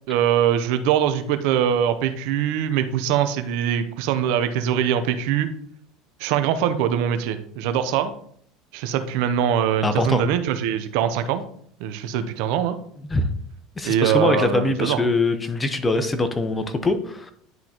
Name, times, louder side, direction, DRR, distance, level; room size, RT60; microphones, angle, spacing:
voice 1, 0.1-5.5 6.2-8.1 8.7-11.4 11.8-12.8 13.8-15.0, right 9 dB, 70° right, 10 dB, 0.7 m, -22 dB
voice 2, 9.8-10.2 13.1-13.3 13.8-17.3, left 2 dB, 20° left, 9 dB, 0.9 m, -23 dB
10.5 x 3.9 x 3.0 m, 0.62 s
supercardioid pair, 90°, 0 cm